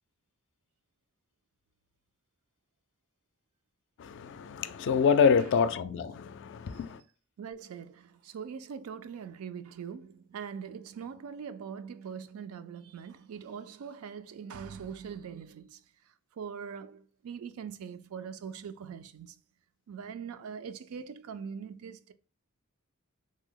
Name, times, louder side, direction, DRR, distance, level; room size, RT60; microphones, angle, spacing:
voice 1, 4.0-7.0, left 6 dB, 60° left, 0.3 m, -26 dB
voice 2, 7.4-15.8 16.4-19.4 19.9-22.1, right 7 dB, 85° right, 0.4 m, -42 dB
3.2 x 2.0 x 3.6 m
head